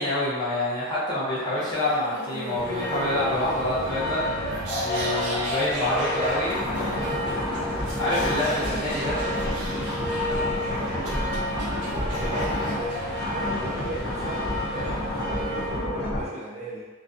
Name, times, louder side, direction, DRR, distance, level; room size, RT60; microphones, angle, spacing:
voice 1, 0.0-4.2 4.8-7.2 8.0-9.2, left 1 dB, 20° left, -9 dB, 0.6 m, -27 dB
sound 1, 1.6-14.3, right 1 dB, 85° right, 0.6 m, -37 dB
sound 2, 2.5-15.8, left 1 dB, 15° right, 0.7 m, -31 dB
sound 3, 6.4-12.9 13.1-16.3, left 1 dB, 65° left, 0.6 m, -31 dB
voice 2, 9.7-10.1 10.5-11.3 11.9-16.9, right 1 dB, 30° right, -6 dB, 0.3 m, -38 dB
2.4 x 2.2 x 2.5 m, 1.3 s
head